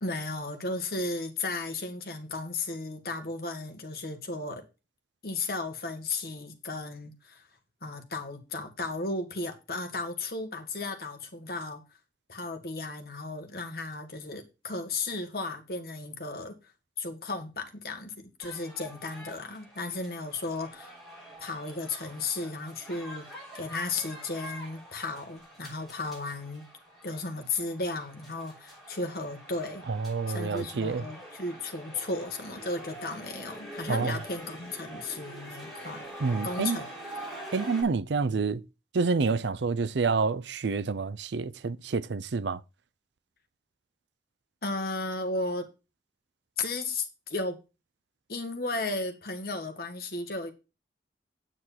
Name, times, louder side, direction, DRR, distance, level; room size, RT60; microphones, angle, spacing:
voice 1, 0.0-4.6 5.2-7.5 7.8-11.8 12.3-16.7 17.0-21.0 21.4-26.7 27.0-29.9 30.3-36.1 36.4-36.9 44.6-45.7 46.6-47.6 48.3-50.5, left 3 dB, 55° left, 1.7 m, -35 dB
sound 1, 18.4-37.8, right 1 dB, ahead, 6.3 m, -45 dB
voice 2, 29.9-31.0 33.9-34.1 36.2-36.8 37.5-38.6 38.9-42.6, right 4 dB, 75° right, 0.5 m, -28 dB
8.9 x 7.9 x 4.3 m
head